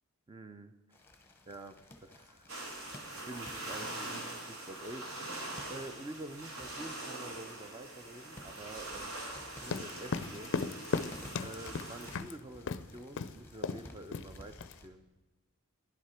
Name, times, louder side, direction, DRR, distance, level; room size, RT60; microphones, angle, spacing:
voice 1, 0.3-0.7 1.5-2.5 3.2-5.1 5.7-9.2 9.5-10.6 11.4-15.1, right 2 dB, 20° right, 9 dB, 0.4 m, -47 dB
sound 1, 0.9-14.9, left 1 dB, 10° left, 0.9 m, -55 dB
sound 2, 2.5-12.2, right 2 dB, 65° right, 2.0 m, -43 dB
sound 3, 9.6-12.3 12.7-12.9 13.2-13.3 13.6-13.9 14.1-14.7, left 5 dB, 55° left, 0.4 m, -36 dB
10.5 x 8.1 x 4.3 m, 1.2 s
head